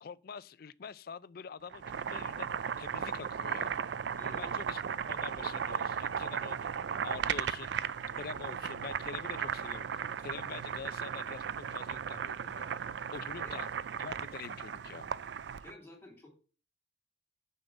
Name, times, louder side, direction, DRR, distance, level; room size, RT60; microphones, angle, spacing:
voice 1, 0.0-2.5 2.8-3.7 4.2-4.8 5.1-6.7 7.0-7.7 8.1-9.9 10.2-12.7 13.1-13.7 14.0-15.1, left 6 dB, 55° left, 0.4 m, -45 dB
Boiling, 1.7-15.7, right 7 dB, 75° right, 0.4 m, -36 dB
voice 2, 4.2-4.5 13.4-13.6 15.6-16.3, left 2 dB, 15° left, 3.2 m, -52 dB
6.5 x 5.7 x 7.2 m
head